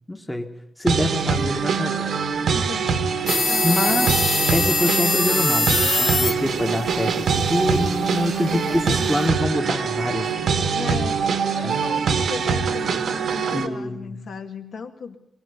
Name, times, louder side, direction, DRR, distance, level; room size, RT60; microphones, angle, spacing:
voice 1, 0.1-0.5 0.8-2.0 3.6-10.3 11.6-11.8 13.5-14.2, left 1 dB, 5° left, 3 dB, 1.2 m, -25 dB
sound 1, 0.9-13.7, right 5 dB, 85° right, 1.5 m, -24 dB
voice 2, 2.5-3.1 3.5-4.2 7.0-7.5 8.5-9.4 10.7-11.2 11.5-12.9 13.3-15.2, left 5 dB, 80° left, 4 dB, 2.3 m, -36 dB
sound 2, 3.3-9.3, left 4 dB, 30° left, 0.7 m, -25 dB
22.5 x 18.5 x 6.9 m, 0.81 s
wide cardioid pair, 155°, 0 cm